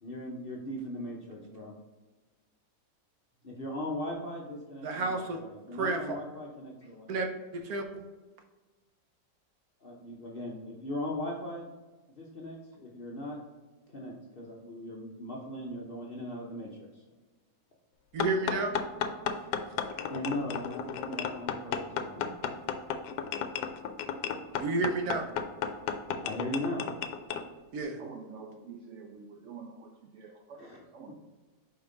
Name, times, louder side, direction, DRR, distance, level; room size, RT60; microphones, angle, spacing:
voice 1, 0.0-1.7 3.4-7.1 9.8-11.7 12.1-13.4 13.9-17.0 20.1-22.3 26.2-26.9 30.6-30.8, left 1 dB, 45° left, -2 dB, 0.8 m, -38 dB
voice 2, 4.8-5.4 5.8-6.0 7.1-8.0 18.1-18.7 24.6-25.3 27.7-28.0, right 3 dB, 65° right, 4 dB, 1.1 m, -31 dB
sound 1, 18.2-27.4, left 7 dB, 75° left, 1.1 m, -34 dB
voice 3, 28.0-31.1, right 5 dB, 90° right, 4 dB, 0.6 m, -47 dB
5.3 x 4.6 x 3.9 m, 1.2 s
omnidirectional pair, 1.9 m